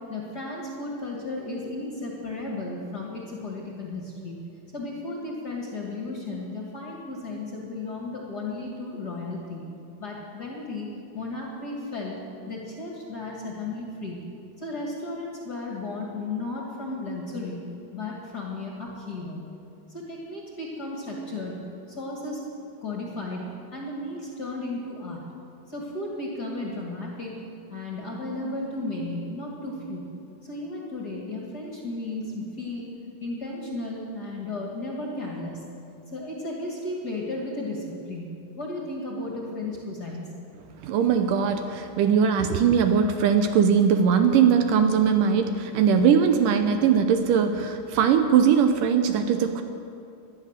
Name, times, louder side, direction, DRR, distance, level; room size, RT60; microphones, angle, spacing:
voice 1, 0.1-4.4 4.7-9.6 10.0-10.9 11.1-14.2 14.6-17.7 17.9-19.4 19.9-22.4 22.8-25.2 25.7-27.4 27.7-30.1 30.4-32.9 33.2-35.6 36.1-38.3 38.6-40.3, left 2 dB, 35° left, -2 dB, 2.0 m, -34 dB
voice 2, 40.8-49.6, right 7 dB, 75° right, 7 dB, 2.2 m, -20 dB
18.0 x 11.5 x 6.6 m, 2.6 s
omnidirectional pair, 4.1 m